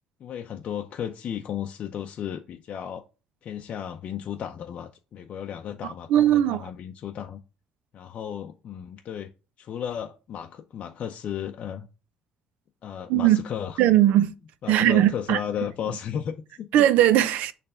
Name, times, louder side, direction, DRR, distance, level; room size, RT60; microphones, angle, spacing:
voice 1, 0.2-3.0 3.4-7.4 7.9-9.3 9.6-11.9 12.8-13.8 14.6-16.7, left 9 dB, 50° left, 0.5 m, -34 dB
voice 2, 5.8-6.7 13.1-13.4 13.8-14.3 14.7-15.4 16.7-17.5, right 12 dB, 80° right, 0.5 m, -19 dB
6.5 x 3.3 x 5.5 m
cardioid pair, 110°, 3 cm